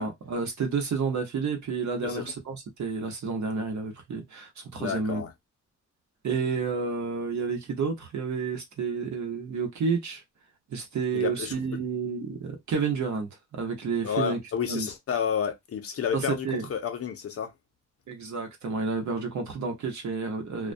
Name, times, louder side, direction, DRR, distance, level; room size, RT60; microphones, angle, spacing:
voice 1, 0.0-5.2 6.2-10.2 10.7-14.4 14.6-14.9 16.1-16.7 18.1-20.7, right 5 dB, 65° right, 0.9 m, -30 dB
voice 2, 2.0-2.3 4.8-5.3 11.1-11.5 14.0-17.5, left 7 dB, 50° left, 0.5 m, -30 dB
2.3 x 2.2 x 2.5 m
wide cardioid pair, 150°, 31 cm